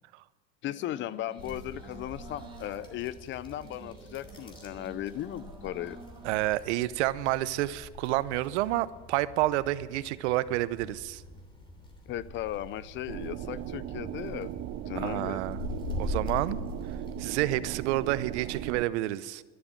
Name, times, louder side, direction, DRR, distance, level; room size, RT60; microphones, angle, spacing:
voice 1, 0.6-6.0 12.1-14.5 14.9-15.4, left 13 dB, 35° left, 18 dB, 0.5 m, -36 dB
sound 1, 0.6-6.3, right 4 dB, 15° right, 1.9 m, -50 dB
sound 2, 1.4-18.7, left 2 dB, 15° left, 3.2 m, -43 dB
voice 2, 6.2-11.2 15.0-15.6 16.0-16.6 17.2-19.4, right 16 dB, 75° right, 17 dB, 0.8 m, -29 dB
sound 3, 13.1-18.8, right 14 dB, 40° right, 0.6 m, -38 dB
13.0 x 11.0 x 9.0 m, 1.4 s
supercardioid pair, 125°, 35 cm